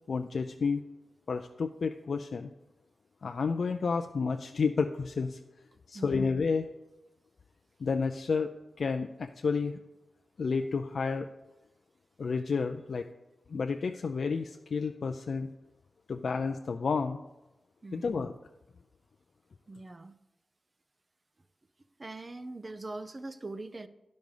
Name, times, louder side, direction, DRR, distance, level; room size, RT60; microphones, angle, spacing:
voice 1, 0.1-0.8 1.3-2.5 3.2-5.4 5.9-6.7 7.8-8.5 8.8-9.8 10.4-11.3 12.2-13.1 13.5-15.5 16.1-17.2 17.9-18.3, left 5 dB, 70° left, 6 dB, 0.4 m, -30 dB
voice 2, 5.9-6.3 17.8-18.1 19.7-20.2 22.0-23.9, right 2 dB, 40° right, 12 dB, 0.6 m, -42 dB
10.5 x 5.2 x 4.8 m, 0.98 s
cardioid pair, 50°, 0 cm